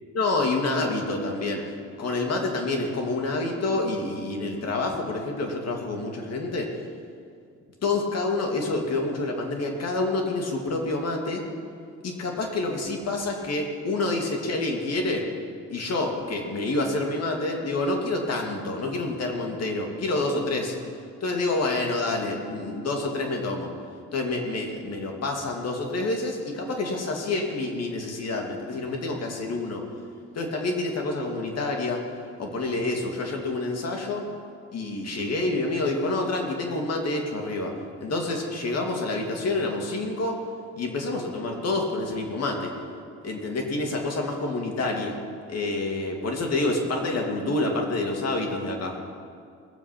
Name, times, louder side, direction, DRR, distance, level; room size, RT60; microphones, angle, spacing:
voice 1, 0.1-1.6 2.0-6.7 7.8-11.4 12.0-15.3 15.7-20.7 21.2-23.7 24.1-29.8 30.3-32.0 32.4-34.3 34.7-40.4 40.8-42.7 43.2-45.2 45.5-48.9, left 2 dB, 55° left, 2 dB, 2.5 m, -28 dB
20.0 x 7.5 x 6.0 m, 2.3 s
cardioid pair, 90°, 30 cm